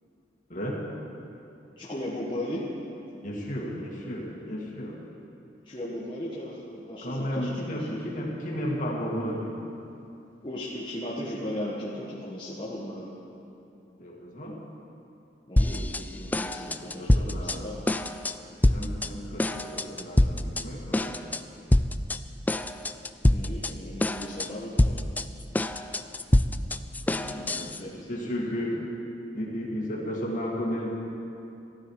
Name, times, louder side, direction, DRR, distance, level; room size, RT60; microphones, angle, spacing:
voice 1, 0.5-0.8 3.2-5.0 7.0-9.6 14.0-14.6 16.4-18.0 18.7-21.2 26.4-26.6 27.1-28.8 29.3-30.9, equal, 45° left, -2 dB, 2.3 m, -34 dB
voice 2, 1.8-2.7 5.6-8.0 10.4-13.1 15.5-17.9 23.3-25.0 27.1-27.4 27.8-27.9, left 1 dB, 25° left, -7 dB, 1.4 m, -36 dB
sound 1, 15.6-16.0 16.3-17.6 17.9-18.3 18.6-19.1 19.4-20.6 20.9-21.4 21.7-22.2 22.5-23.7 24.0-24.5 24.8-27.8, left 1 dB, 10° left, 0.3 m, -25 dB
15.0 x 13.0 x 4.8 m, 2.8 s
head